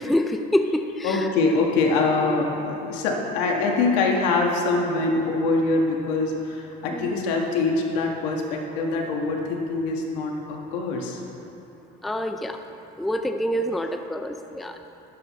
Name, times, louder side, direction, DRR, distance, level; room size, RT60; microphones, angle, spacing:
voice 1, 0.0-1.3 2.3-2.4 6.9-7.2 12.0-12.6 13.0-14.8, equal, ahead, 7 dB, 0.4 m, -26 dB
voice 2, 1.0-11.2, left 3 dB, 80° left, 1 dB, 1.7 m, -24 dB
12.0 x 11.5 x 3.2 m, 3.0 s
supercardioid pair, 125°, 21 cm